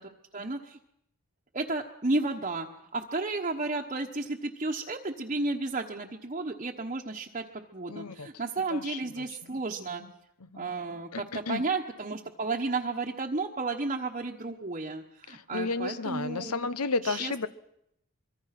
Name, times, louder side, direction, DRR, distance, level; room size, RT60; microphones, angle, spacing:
voice 1, 0.3-0.8 1.5-10.0 10.5-16.5 17.0-17.5, right 3 dB, 35° right, 0 dB, 1.2 m, -33 dB
voice 2, 7.9-8.3 8.7-9.4 10.0-10.1 10.4-10.7 11.1-11.6 15.3-17.5, left 4 dB, 90° left, 15 dB, 1.0 m, -33 dB
25.0 x 23.0 x 6.0 m, 0.78 s
head